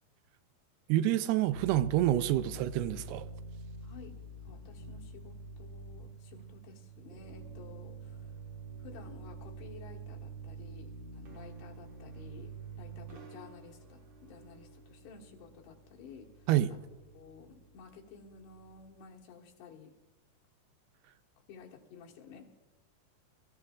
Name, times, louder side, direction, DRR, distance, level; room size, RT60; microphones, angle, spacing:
voice 1, 0.9-3.3 16.5-16.7, right 13 dB, 85° right, 2.6 m, -27 dB
sound 1, 1.5-18.9, right 3 dB, 60° right, 2.5 m, -47 dB
voice 2, 3.8-4.2 4.4-8.4 8.8-16.8 17.1-19.9 21.5-22.5, left 6 dB, 85° left, 3.6 m, -53 dB
24.0 x 14.5 x 2.4 m
omnidirectional pair, 4.6 m